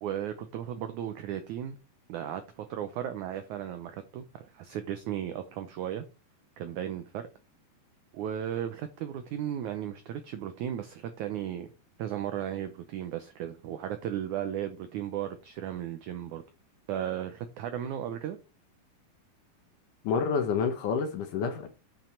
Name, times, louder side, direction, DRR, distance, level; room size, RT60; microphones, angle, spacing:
voice 1, 0.0-1.8 2.1-6.0 6.6-7.3 8.1-11.7 12.0-16.4 16.9-18.4, right 10 dB, 85° right, 1.7 m, -35 dB
voice 2, 20.0-21.7, left 6 dB, 65° left, 2.3 m, -28 dB
9.3 x 5.1 x 4.4 m
omnidirectional pair, 4.5 m